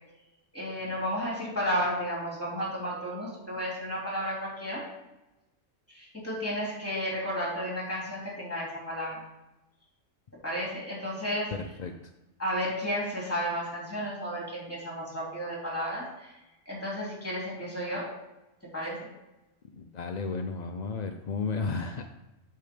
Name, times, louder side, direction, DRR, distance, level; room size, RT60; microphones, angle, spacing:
voice 1, 0.5-4.8 5.9-9.2 10.4-11.5 12.4-16.3 16.7-18.1 18.7-19.1, equal, 10° left, -4 dB, 2.9 m, -32 dB
voice 2, 11.5-11.9 19.7-22.0, left 4 dB, 60° left, 5 dB, 0.4 m, -33 dB
8.4 x 3.8 x 6.7 m, 0.98 s
omnidirectional pair, 1.3 m